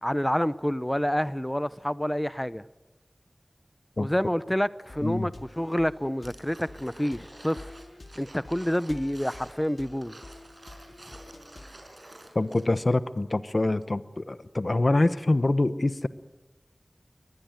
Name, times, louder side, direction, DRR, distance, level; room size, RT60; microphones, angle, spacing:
voice 1, 0.0-2.6 4.0-7.7 8.2-10.2, equal, 10° left, 0.7 m, -28 dB
sound 1, 4.9-11.9, left 2 dB, 75° left, 2.1 m, -48 dB
sound 2, 6.2-12.9 13.2-13.3, right 1 dB, 55° right, 5.8 m, -50 dB
voice 2, 12.3-16.1, left 2 dB, 55° left, 1.0 m, -25 dB
22.5 x 20.0 x 9.6 m
wide cardioid pair, 50°, 0 cm